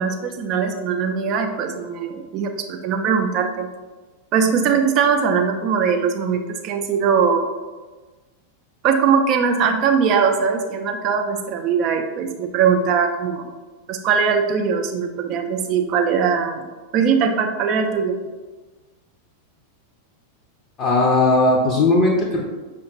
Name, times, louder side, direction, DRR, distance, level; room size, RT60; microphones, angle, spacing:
voice 1, 0.0-3.7 4.3-7.5 8.8-13.5 13.9-18.2, right 6 dB, 40° right, 5 dB, 0.5 m, -21 dB
voice 2, 20.8-22.4, left 2 dB, 30° left, -3 dB, 0.6 m, -17 dB
5.5 x 2.5 x 3.0 m, 1.3 s
figure-of-eight pair, 90°, 0 cm